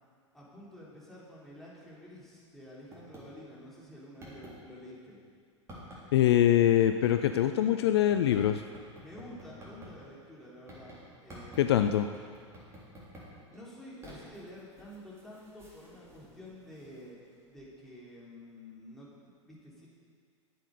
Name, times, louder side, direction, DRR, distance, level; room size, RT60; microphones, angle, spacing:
voice 1, 0.3-5.2 9.0-11.9 13.5-19.9, left 1 dB, ahead, -7 dB, 3.1 m, -50 dB
sound 1, 2.9-3.2 3.7-3.8 4.2-4.5 5.7-6.0 7.0-7.4 8.1-9.9 10.7-11.0 11.3-11.7 12.1-13.3 13.5-17.3 17.6-17.7, equal, 15° right, 3.5 m, -50 dB
voice 2, 6.1-8.6 11.6-12.1, left 11 dB, 55° left, 9 dB, 0.4 m, -24 dB
12.0 x 8.4 x 5.2 m, 2.1 s
figure-of-eight pair, 90°, 16 cm